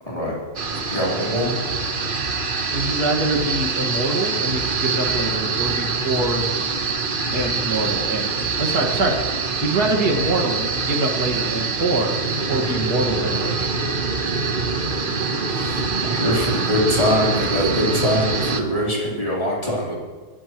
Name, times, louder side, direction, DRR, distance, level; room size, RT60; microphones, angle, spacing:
sound 1, 0.6-18.6, right 4 dB, 35° right, 1.2 m, -24 dB
voice 1, 0.9-1.5 15.5-20.0, left 1 dB, 20° left, -5 dB, 4.0 m, -23 dB
voice 2, 2.7-6.5 7.3-9.2 9.6-12.2 12.5-13.7, right 2 dB, 75° right, 2 dB, 2.6 m, -24 dB
22.5 x 15.0 x 3.1 m, 1.5 s
omnidirectional pair, 1.7 m